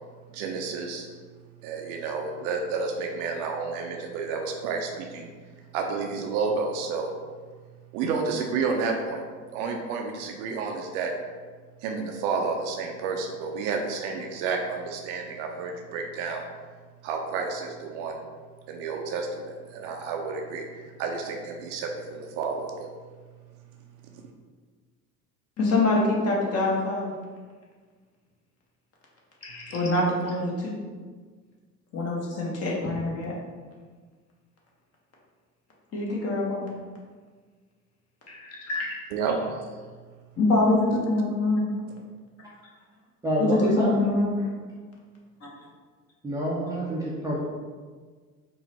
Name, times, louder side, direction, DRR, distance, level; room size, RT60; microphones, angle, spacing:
voice 1, 0.3-1.1 1.6-5.3 5.7-7.1 7.9-9.2 9.5-11.1 11.8-16.4 17.0-18.2 18.7-22.9 39.1-39.7, right 4 dB, 50° right, 2 dB, 0.7 m, -30 dB
voice 2, 25.6-27.1 29.4-30.8 31.9-33.3 35.9-36.7 38.3-38.9 40.4-41.7 43.4-44.4, left 2 dB, 30° left, -3 dB, 1.3 m, -25 dB
voice 3, 43.2-43.9 46.2-47.4, equal, 10° right, -7 dB, 0.7 m, -27 dB
4.5 x 2.8 x 4.1 m, 1.5 s
figure-of-eight pair, 70°, 46 cm